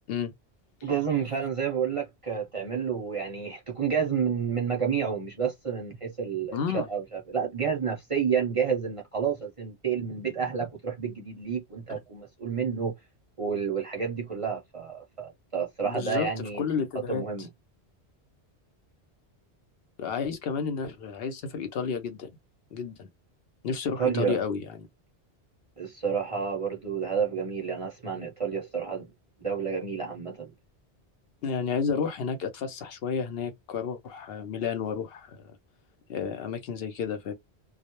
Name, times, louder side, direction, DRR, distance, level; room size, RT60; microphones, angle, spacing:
voice 1, 0.8-12.9 13.4-16.6 16.9-17.5 24.0-24.4 25.8-29.1 29.4-30.5, right 7 dB, 40° right, 0.5 m, -30 dB
voice 2, 6.5-6.9 15.8-16.3 16.6-17.2 20.0-22.3 22.7-23.1 23.6-24.8 31.4-35.4 36.1-37.3, left 6 dB, 65° left, 0.8 m, -31 dB
2.3 x 2.0 x 2.8 m
omnidirectional pair, 1.1 m